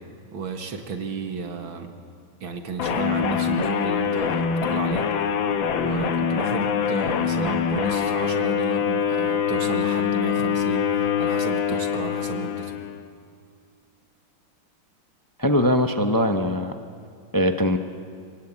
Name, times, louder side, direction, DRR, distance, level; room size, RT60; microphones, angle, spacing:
voice 1, 0.3-1.9 2.4-5.1 5.8-12.8, right 5 dB, 90° right, 5 dB, 2.6 m, -33 dB
sound 1, 2.8-13.0, left 7 dB, 80° left, 1.9 m, -24 dB
voice 2, 15.4-16.7 17.3-17.8, left 1 dB, 30° left, 6 dB, 0.3 m, -21 dB
27.0 x 19.0 x 8.8 m, 2.3 s
omnidirectional pair, 2.1 m